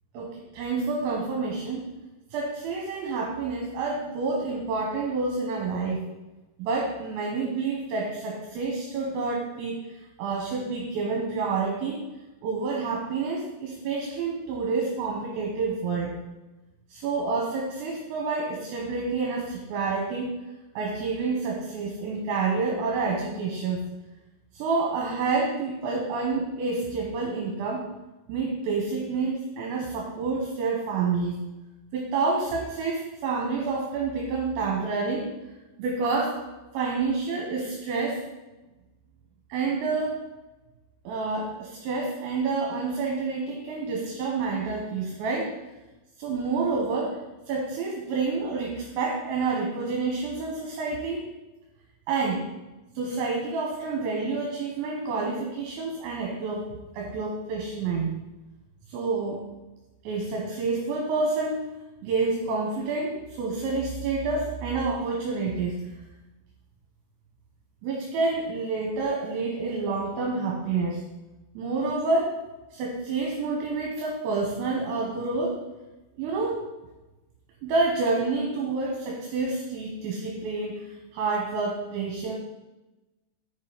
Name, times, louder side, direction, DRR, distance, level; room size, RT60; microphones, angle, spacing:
voice 1, 0.1-1.9 2.3-6.1 6.6-9.8 10.2-12.0 12.4-16.1 16.9-20.3 20.8-23.8 24.5-27.9 28.3-31.4 31.9-35.3 35.8-36.4 36.7-38.2 39.5-40.2 41.0-45.5 46.2-47.2 47.5-51.3 52.1-52.4 53.0-58.1 58.9-59.5 60.0-61.7 62.0-66.0 67.8-71.0 71.6-72.3 72.7-75.6 76.2-76.6 77.6-80.9 81.1-82.4, right 4 dB, 80° right, -1 dB, 3.2 m, -28 dB
6.3 x 5.5 x 4.9 m, 1.1 s
omnidirectional pair, 5.3 m